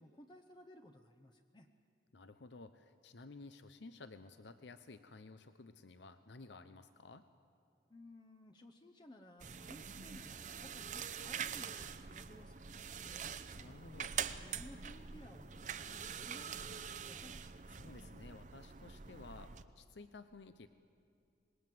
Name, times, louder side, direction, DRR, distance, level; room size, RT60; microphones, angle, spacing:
voice 1, 0.0-1.7 7.9-13.4 14.4-17.3, left 1 dB, 25° left, 4 dB, 0.7 m, -58 dB
voice 2, 2.1-7.3 13.6-14.1 17.7-20.7, left 3 dB, 80° left, 11 dB, 0.7 m, -54 dB
sound 1, 9.4-19.6, right 7 dB, 40° right, 0.7 m, -45 dB
26.0 x 20.5 x 7.6 m, 2.5 s
head